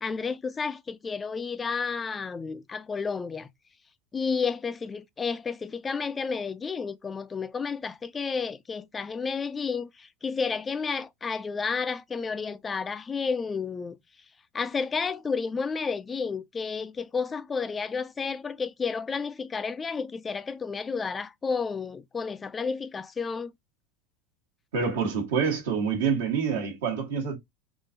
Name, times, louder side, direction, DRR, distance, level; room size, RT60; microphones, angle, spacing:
voice 1, 0.0-3.5 4.1-14.0 14.5-23.5, left 5 dB, 25° left, 0.4 m, -31 dB
voice 2, 24.7-27.4, right 6 dB, 75° right, 1.2 m, -27 dB
3.7 x 2.5 x 2.5 m
hypercardioid pair, 80°, 0 cm